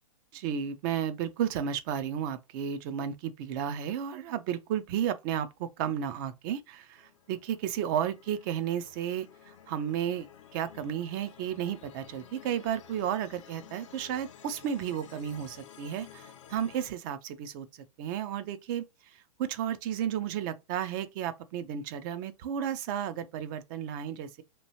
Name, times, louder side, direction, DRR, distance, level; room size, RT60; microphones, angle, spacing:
voice 1, 0.3-17.7 18.0-18.8 19.4-24.4, right 9 dB, 35° right, 0.4 m, -33 dB
sound 1, 6.9-16.9, left 9 dB, 55° left, 0.5 m, -53 dB
2.9 x 2.6 x 2.8 m
figure-of-eight pair, 110°, 19 cm